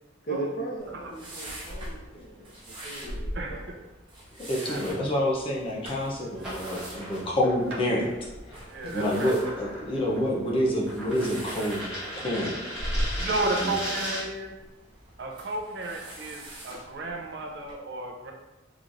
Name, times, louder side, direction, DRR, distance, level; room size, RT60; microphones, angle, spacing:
voice 1, 0.2-3.6 8.8-9.2, right 2 dB, 50° left, -5 dB, 1.0 m, -38 dB
sound 1, 0.8-17.7, equal, 25° right, 1.2 m, -40 dB
voice 2, 3.3-3.7 4.6-4.8 6.4-6.5 8.7-9.3 13.2-14.5 15.2-18.3, right 2 dB, 60° right, 1 dB, 0.5 m, -33 dB
voice 3, 4.5-8.1 8.9-11.9 12.2-12.6 13.6-13.7, left 1 dB, 25° left, -3 dB, 0.6 m, -27 dB
sound 2, 6.4-14.4, equal, 5° right, 1.0 m, -38 dB
3.9 x 3.0 x 2.5 m, 1.1 s
head